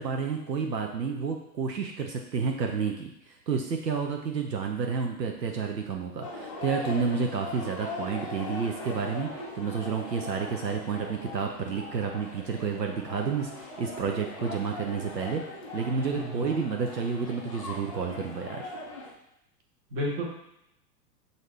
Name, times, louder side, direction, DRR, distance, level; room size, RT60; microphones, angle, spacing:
voice 1, 0.0-3.1 3.5-9.3 9.5-15.4 15.7-18.7, right 5 dB, 80° right, 2 dB, 0.6 m, -30 dB
sound 1, 6.2-19.1, left 2 dB, 25° left, 0.4 m, -40 dB
voice 2, 15.9-16.5 19.9-20.2, left 1 dB, 30° right, -2 dB, 1.3 m, -32 dB
6.3 x 2.6 x 3.1 m, 0.80 s
figure-of-eight pair, 100°, 50 cm